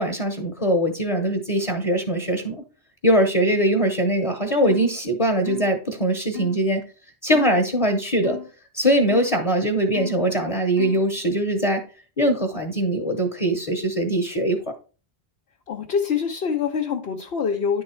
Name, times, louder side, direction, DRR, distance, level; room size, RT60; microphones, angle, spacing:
voice 1, 0.0-2.6 3.0-6.8 7.2-8.4 8.7-11.8 12.2-14.6, right 1 dB, 35° left, 3 dB, 1.0 m, -22 dB
sound 1, 4.6-4.9 5.5-5.7 6.3-6.6 7.3-7.6 8.2-8.5 9.1-9.3 9.9-10.2 10.8-11.1, left 12 dB, 30° right, 1.4 m, -34 dB
voice 2, 15.7-17.8, left 6 dB, 70° left, 1 dB, 1.0 m, -25 dB
9.8 x 3.9 x 4.3 m, 0.36 s
omnidirectional pair, 1.1 m